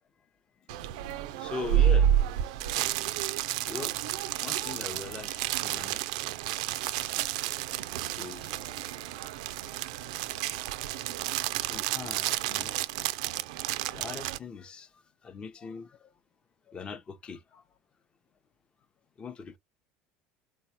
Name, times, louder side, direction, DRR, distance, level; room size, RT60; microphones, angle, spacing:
sound 1, 0.7-14.4, right 11 dB, 85° right, 0.3 m, -30 dB
voice 1, 1.4-2.1 3.7-6.0 7.5-7.6 8.1-8.6 11.6-12.7 13.9-14.9 15.2-16.0 16.7-17.6 19.2-19.6, left 5 dB, 30° left, 0.5 m, -41 dB
4.1 x 2.2 x 2.7 m
supercardioid pair, 120°, 3 cm